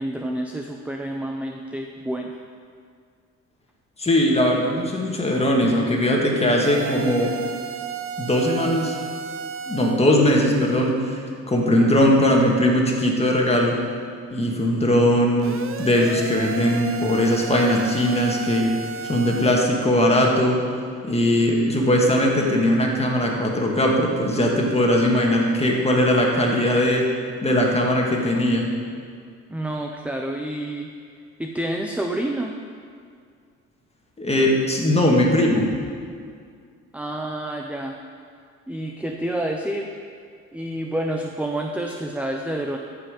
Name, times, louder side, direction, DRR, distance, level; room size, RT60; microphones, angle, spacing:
voice 1, 0.0-2.4 29.5-30.9 31.4-32.5 36.9-37.9 38.7-40.0 40.5-42.8, right 1 dB, 5° right, 2 dB, 0.6 m, -28 dB
voice 2, 4.0-7.4 8.2-9.0 9.7-11.2 11.5-13.8 14.3-18.7 19.0-20.6 21.0-27.1 27.4-28.7 34.2-35.7, left 1 dB, 20° left, -1 dB, 1.9 m, -20 dB
sound 1, 6.6-10.0 15.4-19.7, right 7 dB, 45° right, 0.6 m, -33 dB
14.0 x 5.8 x 5.1 m, 2.2 s
cardioid pair, 90°, 30 cm